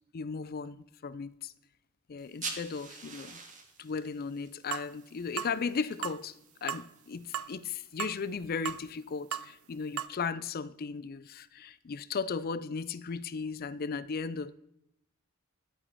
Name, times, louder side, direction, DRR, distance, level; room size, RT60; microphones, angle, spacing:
voice 1, 0.1-1.5 2.1-3.4 3.8-6.3 6.6-14.5, left 5 dB, 45° left, 0.4 m, -36 dB
sound 1, 2.2-7.4, right 4 dB, 35° right, 1.3 m, -46 dB
sound 2, 4.7-4.9 5.4-5.6 6.0-6.2 6.7-6.9 7.3-7.5 8.0-8.2 8.7-8.8 9.3-9.5 10.0-10.1, right 10 dB, 80° right, 0.4 m, -35 dB
11.5 x 8.3 x 4.5 m
head